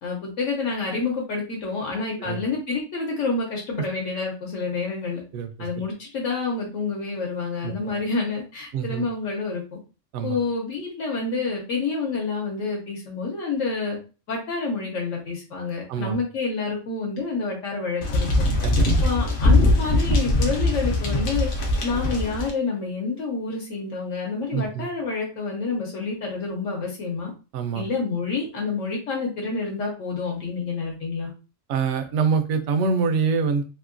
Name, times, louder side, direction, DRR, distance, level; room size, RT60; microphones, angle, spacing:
voice 1, 0.0-5.2 5.6-9.6 10.2-14.0 14.3-18.3 19.0-21.5 21.8-27.3 27.7-31.3, left 4 dB, 75° left, -1 dB, 1.1 m, -28 dB
voice 2, 5.3-5.7 7.6-8.0 8.7-9.1 10.1-10.4 15.9-16.2 18.6-18.9 24.5-24.9 27.5-27.8 31.7-33.6, right 5 dB, 70° right, 7 dB, 0.8 m, -25 dB
sound 1, 18.0-22.5, left 2 dB, 55° left, 0.6 m, -21 dB
2.9 x 2.6 x 2.5 m, 0.33 s
omnidirectional pair, 1.4 m